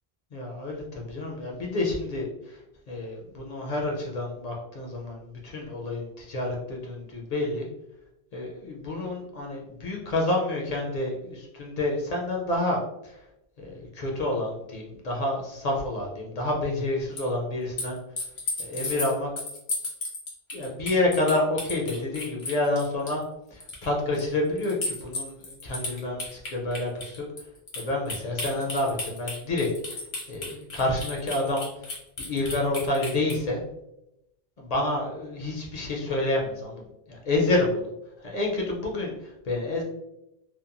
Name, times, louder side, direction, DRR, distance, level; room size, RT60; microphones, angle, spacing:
voice 1, 0.3-2.6 2.9-7.7 8.3-13.2 13.6-18.0 18.6-19.3 20.5-23.2 23.5-27.2 27.8-33.6 34.6-37.9 38.2-39.8, left 2 dB, 55° left, -1 dB, 0.5 m, -29 dB
sound 1, 17.2-17.3 17.8-23.2 23.6-23.9 24.1-24.2 24.6-33.4, left 2 dB, 85° left, 1.1 m, -34 dB
2.8 x 2.1 x 2.4 m, 0.87 s
omnidirectional pair, 1.0 m